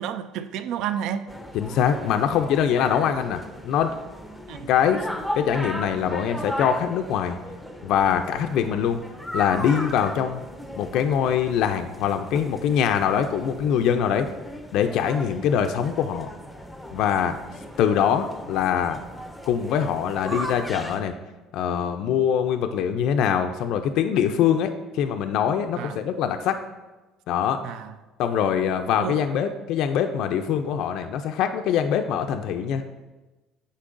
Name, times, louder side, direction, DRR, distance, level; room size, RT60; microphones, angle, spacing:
voice 1, 0.0-1.3 4.5-4.7 25.8-26.0 27.6-28.0 29.0-29.3, right 9 dB, 70° right, 0.3 m, -31 dB
sound 1, 1.3-21.0, equal, ahead, 0.6 m, -37 dB
voice 2, 1.5-3.9 4.7-5.1 5.4-7.4 7.8-9.0 9.3-10.5 10.8-14.3 14.7-16.3 16.9-17.4 17.8-19.0 19.5-21.1 21.5-26.6 27.3-27.6 28.2-32.8, left 8 dB, 70° left, 0.4 m, -23 dB
8.3 x 5.3 x 2.5 m
cardioid pair, 115°, 0 cm